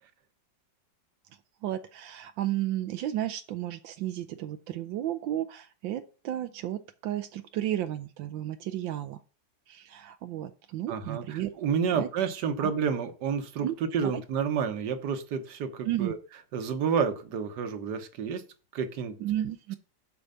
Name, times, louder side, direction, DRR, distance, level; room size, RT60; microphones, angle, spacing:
voice 1, 1.6-9.2 9.7-11.5 11.9-12.1 12.6-12.7 13.6-13.7 14.1-14.2 15.8-16.1 19.2-19.8, right 12 dB, 85° right, 8 dB, 1.4 m, -33 dB
voice 2, 10.9-13.7 13.9-16.2 16.5-18.4 18.7-19.2, right 6 dB, 65° right, 8 dB, 1.6 m, -30 dB
7.8 x 4.7 x 6.7 m, 0.36 s
omnidirectional pair, 2.0 m